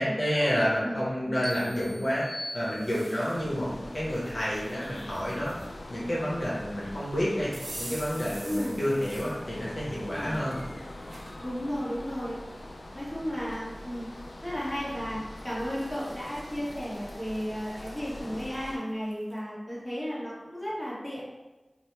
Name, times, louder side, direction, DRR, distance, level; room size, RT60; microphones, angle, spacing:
voice 1, 0.0-2.3 2.5-5.5 5.9-10.6, equal, 65° left, -7 dB, 0.8 m, -29 dB
sound 1, 1.4-3.3, left 1 dB, 30° left, 0.7 m, -41 dB
sound 2, 2.5-3.6 4.1-5.7 7.5-9.4 9.9-11.4 12.0-12.1 13.1-13.2 13.5-14.1 15.4-19.4, right 1 dB, 65° right, 0.4 m, -47 dB
sound 3, 3.3-18.8, left 1 dB, 90° left, 0.3 m, -43 dB
voice 2, 8.4-8.8 10.2-10.4 11.4-12.4 12.9-14.1 14.4-21.2, equal, 10° left, -9 dB, 1.3 m, -34 dB
2.8 x 2.0 x 3.2 m, 1.1 s
wide cardioid pair, 60°, 0 cm